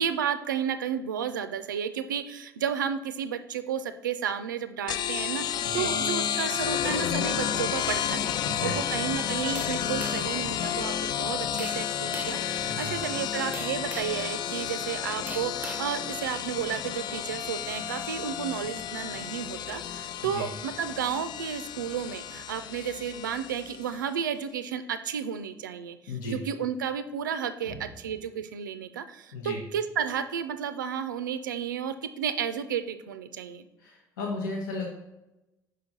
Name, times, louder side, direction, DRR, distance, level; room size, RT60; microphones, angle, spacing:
voice 1, 0.0-33.6, right 8 dB, 75° right, 11 dB, 0.4 m, -32 dB
sound 1, 4.9-24.0, left 9 dB, 45° left, 0.3 m, -31 dB
voice 2, 8.4-9.1 12.7-12.9 20.2-20.5 26.1-26.4 27.6-27.8 29.3-29.6 33.8-34.9, left 2 dB, 70° left, 0 dB, 0.8 m, -35 dB
sound 2, 9.6-10.4 11.6-11.8 12.1-12.4 13.5-14.2 15.3-15.9, right 3 dB, 15° right, 0.6 m, -40 dB
5.7 x 5.0 x 3.9 m, 0.98 s
figure-of-eight pair, 50°, 10 cm